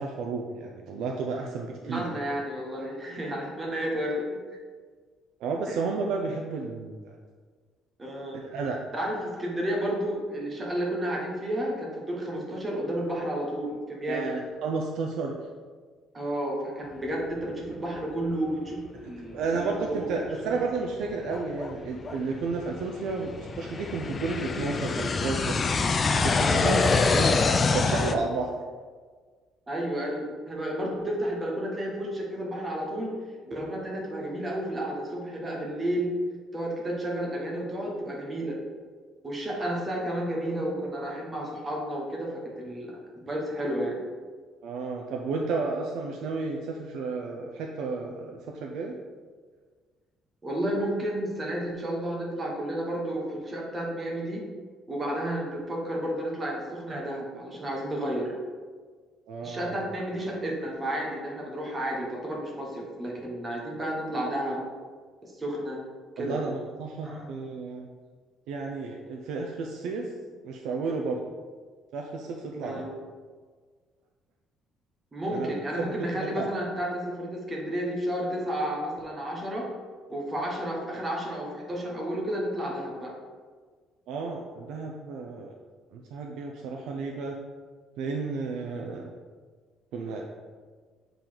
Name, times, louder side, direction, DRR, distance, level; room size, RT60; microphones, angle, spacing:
voice 1, 0.0-2.1 5.4-7.1 8.3-8.8 14.1-15.4 19.3-25.6 26.2-26.8 27.1-27.4 27.7-28.5 44.6-49.0 59.3-59.8 66.2-67.9 68.5-70.1 70.4-71.2 71.9-72.8 75.3-75.5 75.8-76.5 84.1-85.5 85.9-87.4 88.0-89.1 89.9-90.3, right 4 dB, 65° right, 1 dB, 0.6 m, -32 dB
voice 2, 1.8-4.3 5.7-5.8 8.0-8.4 8.9-14.3 16.1-20.1 20.4-20.6 26.4-26.8 29.7-33.1 33.5-36.1 36.5-38.6 39.2-42.9 43.2-44.0 50.4-54.4 54.9-58.3 59.4-64.6 65.2-65.8 66.2-66.4 67.0-67.3 72.6-72.9 75.1-79.7 80.1-83.2, right 1 dB, 15° right, -2 dB, 1.1 m, -31 dB
sound 1, 19.3-19.4 20.0-20.1 20.8-28.1, left 4 dB, 25° left, 0.3 m, -26 dB
6.8 x 3.9 x 4.5 m, 1.5 s
cardioid pair, 180°, 0 cm